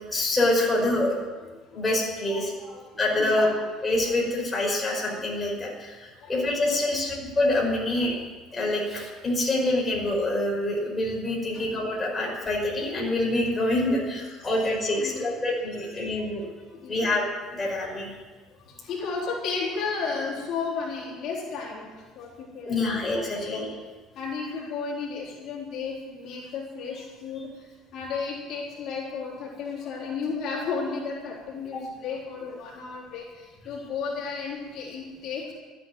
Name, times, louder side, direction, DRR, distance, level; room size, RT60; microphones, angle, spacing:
voice 1, 0.1-1.2 1.7-2.5 3.0-3.5 3.8-8.2 8.5-16.5 16.9-17.2 17.5-18.1 22.7-23.7 31.7-31.8, left 1 dB, 15° left, -3 dB, 5.3 m, -26 dB
voice 2, 2.3-2.9 3.2-3.5 6.1-7.1 11.5-11.7 12.1-12.2 14.2-14.5 14.9-15.4 16.7-17.1 18.6-23.6 24.1-35.5, left 5 dB, 55° left, -4 dB, 4.0 m, -34 dB
14.0 x 10.0 x 9.7 m, 1.4 s
cardioid pair, 140°, 0 cm